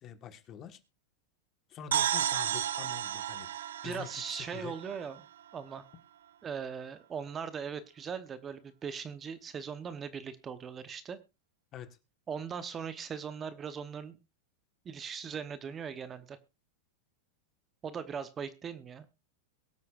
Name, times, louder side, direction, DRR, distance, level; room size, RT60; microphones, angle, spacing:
voice 1, 0.0-0.8 1.7-3.5 3.8-4.8 11.7-12.0, left 9 dB, 35° left, 10 dB, 1.4 m, -45 dB
sound 1, 1.9-5.5, right 10 dB, 85° right, 0.6 m, -33 dB
voice 2, 3.8-5.2 5.5-5.8 6.4-11.2 12.3-14.2 14.8-16.4 17.8-19.0, right 6 dB, 25° right, 13 dB, 0.9 m, -39 dB
22.5 x 8.2 x 2.5 m, 0.26 s
supercardioid pair, 125°, 0 cm